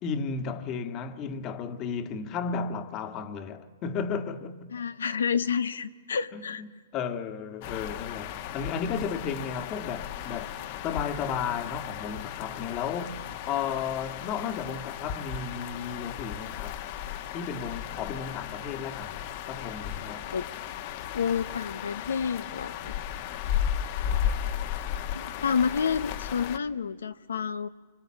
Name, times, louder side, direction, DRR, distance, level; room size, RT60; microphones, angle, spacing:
voice 1, 0.0-4.7 6.3-6.7 6.9-10.6 10.8-16.8 17.3-19.2 19.5-20.3, left 6 dB, 35° left, 1.6 m, -34 dB
voice 2, 4.7-6.6 20.3-20.5 21.1-22.9 25.1-27.7, left 6 dB, 85° left, 0.8 m, -29 dB
sound 1, 7.6-26.6, left 10 dB, 50° left, 1.3 m, -35 dB
29.0 x 25.5 x 7.5 m
hypercardioid pair, 125°, 0 cm